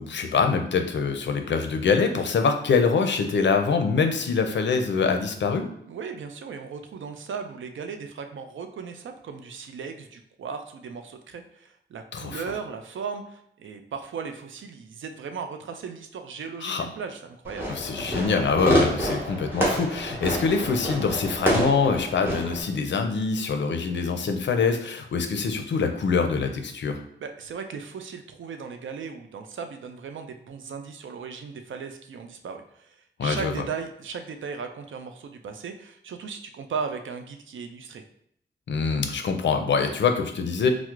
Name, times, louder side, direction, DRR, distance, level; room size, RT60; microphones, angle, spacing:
voice 1, 0.0-5.7 12.1-12.4 16.6-16.8 17.7-27.0 33.2-33.5 38.7-40.7, left 5 dB, 70° left, 6 dB, 0.4 m, -24 dB
voice 2, 5.9-17.7 27.2-38.0, right 5 dB, 85° right, 6 dB, 0.4 m, -37 dB
Fireworks, 17.4-22.6, equal, 10° right, 1.0 m, -27 dB
4.4 x 2.0 x 2.4 m, 0.70 s
wide cardioid pair, 110°, 20 cm